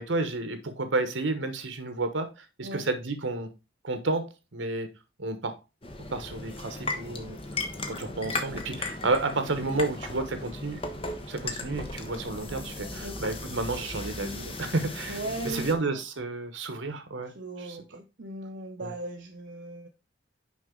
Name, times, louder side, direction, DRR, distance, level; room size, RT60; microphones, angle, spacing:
voice 1, 0.0-3.5 3.8-4.9 5.2-5.6 6.1-7.4 7.9-10.8 11.3-15.2 15.4-17.3 17.6-17.8 18.8-18.9, right 3 dB, 75° right, 1.1 m, -31 dB
sound 1, 5.8-15.7, left 2 dB, 30° left, 0.9 m, -36 dB
voice 2, 15.1-15.8 17.3-19.9, right 2 dB, 60° right, 0.7 m, -38 dB
6.1 x 5.1 x 3.8 m
head